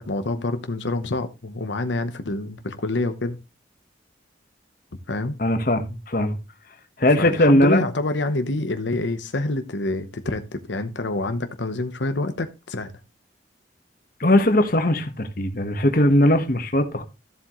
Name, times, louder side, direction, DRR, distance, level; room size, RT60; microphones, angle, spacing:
voice 1, 0.0-3.4 5.1-5.4 7.2-12.9, left 2 dB, 80° left, 1.0 m, -27 dB
voice 2, 5.4-6.4 7.0-7.9 14.2-17.0, left 1 dB, 50° left, 1.3 m, -19 dB
13.5 x 7.6 x 3.1 m
head